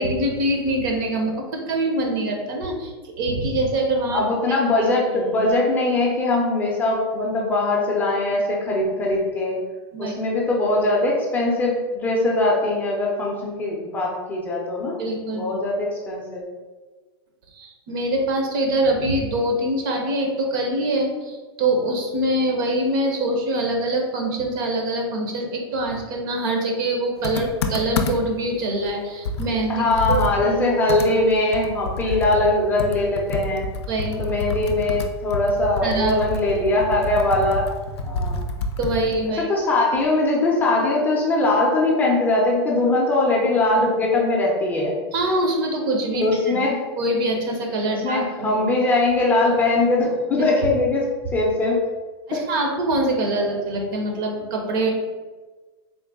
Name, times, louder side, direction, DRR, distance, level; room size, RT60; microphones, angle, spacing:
voice 1, 0.0-4.6 5.1-5.2 9.9-10.2 15.0-15.6 17.5-29.8 30.1-30.6 32.0-32.1 33.9-34.2 35.8-36.2 38.8-39.5 45.1-46.6 47.0-48.6 52.3-54.9, right 1 dB, 50° right, 2 dB, 0.8 m, -24 dB
voice 2, 4.1-9.6 10.0-15.0 15.3-16.5 29.7-33.7 34.2-37.7 38.0-38.4 39.4-44.9 46.2-46.8 48.0-51.8 52.3-52.4, left 2 dB, 15° left, -3 dB, 0.5 m, -21 dB
Computer keyboard, 27.2-28.4 28.8-28.9 29.2-32.5 32.8-39.3, left 2 dB, 90° left, 0.4 m, -28 dB
3.8 x 2.1 x 3.5 m, 1.3 s
supercardioid pair, 150°, 14 cm